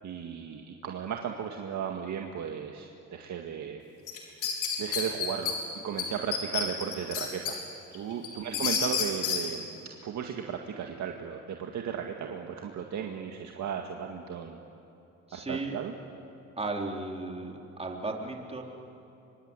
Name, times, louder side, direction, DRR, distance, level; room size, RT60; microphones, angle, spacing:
voice 1, 0.0-3.8 4.4-5.6 5.8-7.6 7.9-9.7 10.0-14.6 15.3-15.9, right 8 dB, 70° right, 3 dB, 1.9 m, -35 dB
sound 1, 4.1-5.5 6.0-6.1 6.3-7.5 7.9-9.4, left 7 dB, 90° left, 4.8 m, -29 dB
voice 2, 15.3-15.7 16.6-18.6, right 2 dB, 20° right, 1 dB, 4.0 m, -35 dB
24.5 x 24.5 x 9.9 m, 2.9 s
cardioid pair, 90°, 30 cm